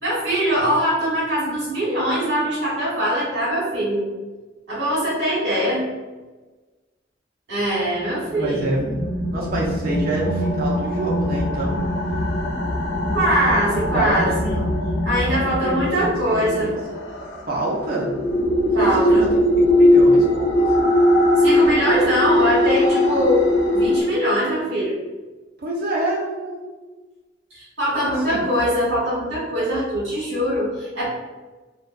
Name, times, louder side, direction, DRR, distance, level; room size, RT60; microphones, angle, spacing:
voice 1, 0.0-4.1 4.7-5.8 7.5-8.6 13.1-14.5 15.0-16.7 18.7-19.3 21.4-23.5 23.7-25.0 27.5-31.1, equal, 90° right, -8 dB, 1.4 m, -22 dB
voice 2, 8.0-8.9 9.3-11.7 13.6-14.7 15.6-16.8 17.5-18.1 18.7-19.3 19.7-20.9 25.6-26.7 28.0-28.4, right 2 dB, 55° right, -4 dB, 0.7 m, -27 dB
sound 1, 8.2-24.0, left 1 dB, 80° left, 0.5 m, -20 dB
2.4 x 2.3 x 2.5 m, 1.2 s
head